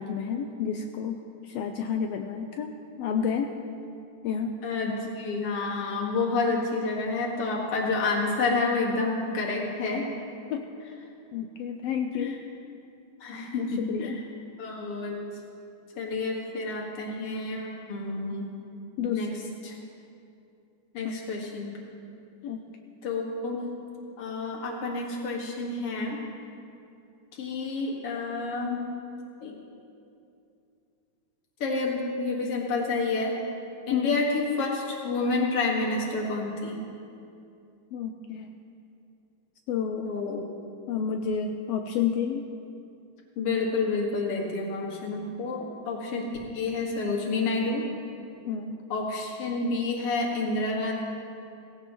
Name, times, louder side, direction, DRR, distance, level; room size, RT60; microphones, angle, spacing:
voice 1, 0.0-3.6 4.2-4.6 10.5-10.7 11.3-12.4 13.3-14.2 19.0-19.4 21.0-21.1 22.4-22.7 33.9-34.2 37.9-38.5 39.7-40.2 40.9-42.5 48.5-48.8, left 7 dB, 85° left, 5 dB, 1.4 m, -30 dB
voice 2, 4.6-10.0 12.2-12.3 13.2-14.1 14.6-15.2 15.9-18.5 19.1-19.3 19.6-19.8 20.9-21.7 23.0-23.7 24.2-26.2 27.4-28.9 29.4-29.6 31.6-33.4 33.9-36.8 40.0-40.4 43.4-46.3 46.5-47.8 48.9-50.9, left 3 dB, 55° left, -2 dB, 2.6 m, -29 dB
17.5 x 16.0 x 3.1 m, 2.6 s
omnidirectional pair, 3.4 m